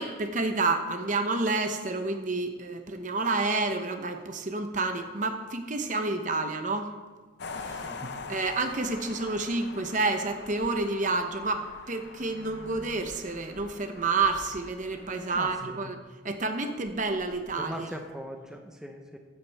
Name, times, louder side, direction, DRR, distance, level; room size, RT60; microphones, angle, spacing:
voice 1, 0.0-6.9 7.7-16.0 16.2-17.9, right 3 dB, 40° right, 7 dB, 0.9 m, -29 dB
sound 1, 7.4-15.6, left 4 dB, 55° left, 0.7 m, -44 dB
voice 2, 15.3-15.8 17.6-19.2, equal, 5° right, 3 dB, 0.8 m, -40 dB
15.5 x 11.0 x 3.5 m, 1.3 s
head